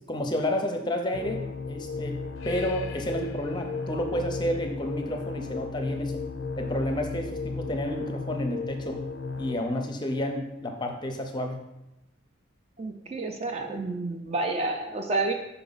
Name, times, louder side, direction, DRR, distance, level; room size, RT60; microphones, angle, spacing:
voice 1, 0.1-1.4 1.7-2.2 2.4-6.2 6.6-9.0 9.4-11.6, equal, 20° left, 4 dB, 0.6 m, -30 dB
sound 1, 1.1-9.5, left 4 dB, 70° left, 0.4 m, -34 dB
voice 2, 12.8-15.3, right 2 dB, 30° right, 5 dB, 0.4 m, -29 dB
5.7 x 4.7 x 4.0 m, 0.92 s
head